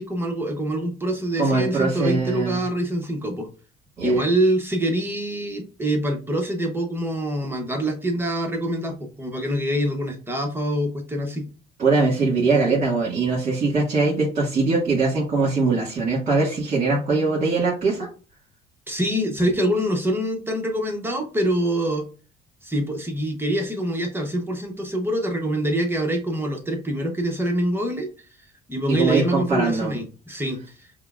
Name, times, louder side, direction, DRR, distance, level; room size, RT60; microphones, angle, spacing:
voice 1, 0.0-3.5 4.0-11.5 18.9-22.1 22.6-28.1 28.7-31.0, right 1 dB, 15° right, 2 dB, 0.8 m, -25 dB
voice 2, 1.4-2.6 4.0-4.2 11.8-18.1 28.9-30.0, right 3 dB, 45° right, -6 dB, 1.7 m, -22 dB
5.5 x 2.1 x 2.4 m, 0.36 s
cardioid pair, 110°, 17 cm